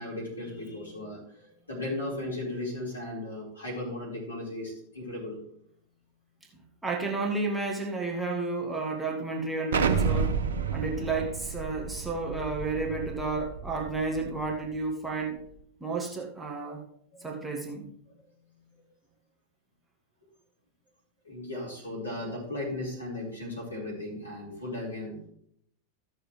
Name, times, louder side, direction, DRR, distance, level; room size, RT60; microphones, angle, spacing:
voice 1, 0.0-5.4 17.1-17.6 21.2-25.3, left 1 dB, 85° left, -5 dB, 4.6 m, -36 dB
voice 2, 6.8-10.4 10.7-15.4 15.8-16.8 17.2-17.9, right 3 dB, 5° right, -1 dB, 1.6 m, -31 dB
Explosion, 9.7-14.4, right 5 dB, 65° right, 0.8 m, -30 dB
14.5 x 6.6 x 3.3 m, 0.70 s
figure-of-eight pair, 90°, 0 cm